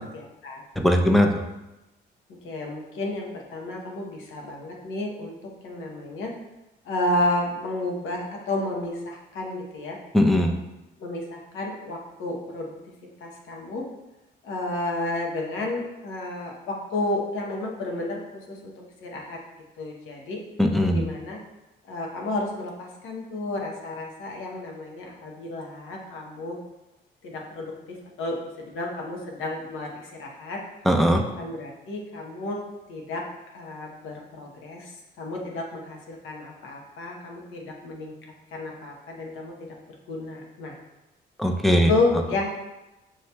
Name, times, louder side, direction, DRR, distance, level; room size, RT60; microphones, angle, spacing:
voice 1, 0.1-0.6 2.4-6.3 6.8-10.0 11.0-12.7 13.2-13.8 14.4-18.7 19.0-19.4 19.8-20.4 20.9-21.4 21.8-26.6 27.2-30.6 31.4-32.6 32.9-33.2 33.5-38.1 38.5-39.7 40.1-40.8 41.9-42.6, left 2 dB, 90° left, 0 dB, 0.9 m, -31 dB
voice 2, 0.8-1.3 10.1-10.6 20.6-21.0 30.9-31.2 41.4-41.9, equal, ahead, 3 dB, 0.4 m, -19 dB
6.3 x 2.8 x 2.2 m, 0.99 s
cardioid pair, 90°, 20 cm